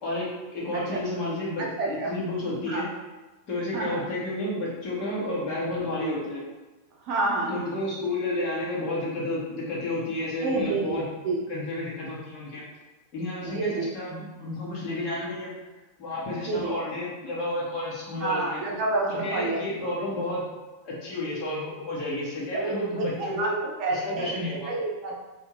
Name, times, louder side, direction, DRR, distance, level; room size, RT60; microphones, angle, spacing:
voice 1, 0.0-2.9 3.5-6.4 7.5-11.0 11.5-12.7 13.1-15.5 16.0-18.6 19.1-20.5 20.8-23.5 23.9-24.7, left 1 dB, 40° left, -7 dB, 1.4 m, -31 dB
voice 2, 1.6-2.1 2.7-2.9 3.7-4.0 7.0-7.7 10.4-11.0 11.2-11.4 13.4-13.9 16.4-16.7 18.2-19.6 22.5-24.4 24.7-25.2, right 2 dB, 40° right, -2 dB, 0.7 m, -29 dB
3.4 x 2.6 x 3.1 m, 1.1 s
figure-of-eight pair, 90°, 0 cm